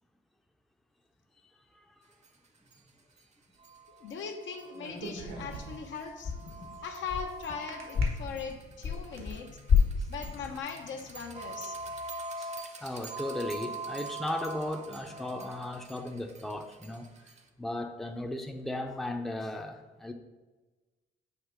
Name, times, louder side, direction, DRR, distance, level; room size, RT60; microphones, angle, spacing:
sound 1, 2.2-2.3 2.7-2.8 3.2-3.3 3.6-17.5, right 2 dB, 35° right, 0.7 m, -44 dB
voice 1, 4.0-6.4 6.8-9.7 10.1-12.0, left 5 dB, 70° left, 3 dB, 0.9 m, -40 dB
sound 2, 4.7-6.0 7.7-8.0 8.6-9.3, right 3 dB, 90° right, 1.4 m, -42 dB
sound 3, 5.5-5.9 6.2-7.6 7.9-9.4 9.7-10.6, left 6 dB, 55° left, 1.4 m, -29 dB
voice 2, 12.8-17.1 17.6-20.1, left 1 dB, ahead, 4 dB, 0.5 m, -36 dB
8.0 x 3.0 x 5.0 m, 1.2 s
cardioid pair, 90°, 20 cm